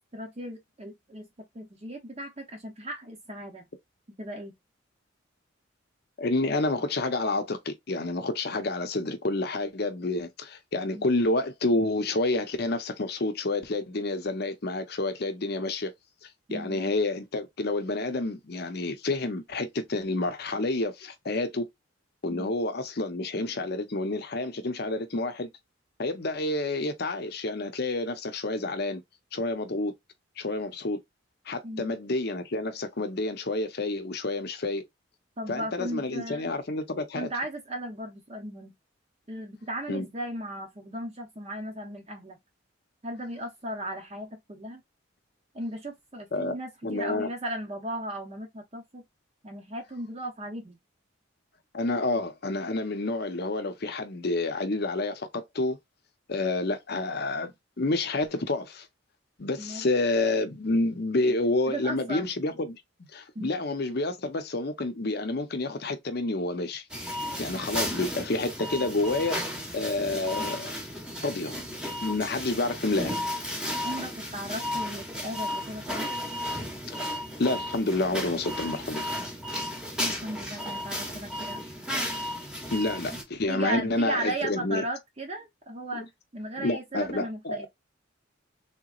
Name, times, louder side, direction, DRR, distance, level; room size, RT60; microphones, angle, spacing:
voice 1, 0.1-1.3 1.5-3.6 4.2-4.5 10.9-11.1 16.5-16.8 22.3-22.5 31.6-31.9 35.4-36.5 37.1-38.7 39.3-42.4 43.0-44.8 45.5-49.0 49.4-50.8 59.6-59.9 61.7-62.3 63.3-63.5 73.8-76.1 80.0-81.7 83.5-86.1 86.3-87.7, right 1 dB, 30° right, 0.6 m, -36 dB
voice 2, 6.2-15.9 16.2-21.7 22.2-25.5 26.0-29.0 29.3-29.9 30.4-31.0 31.5-34.8 35.5-37.3 39.9-40.0 46.3-46.6 46.8-47.3 51.7-55.8 56.3-58.9 59.4-66.8 67.4-70.7 71.2-71.6 72.0-73.2 76.9-77.1 77.4-79.1 82.7-84.8 85.9-86.0 86.6-87.7, left 2 dB, 50° left, 0.7 m, -29 dB
sound 1, 66.9-83.2, equal, 5° right, 0.9 m, -34 dB
3.5 x 2.9 x 2.4 m
head